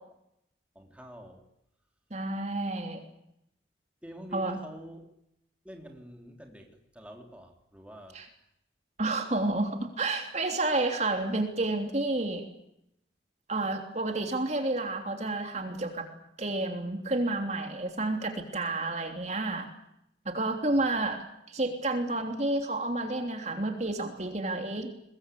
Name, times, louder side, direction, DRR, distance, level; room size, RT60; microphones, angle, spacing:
voice 1, 0.8-1.4 4.0-5.1 5.6-8.2 20.7-21.1, equal, 5° right, 2 dB, 3.5 m, -47 dB
voice 2, 2.1-3.0 4.3-4.6 8.1-8.3 9.0-12.4 13.5-16.0 16.4-19.7 20.2-24.9, right 2 dB, 40° right, 5 dB, 3.2 m, -30 dB
23.5 x 21.5 x 8.4 m, 0.80 s
head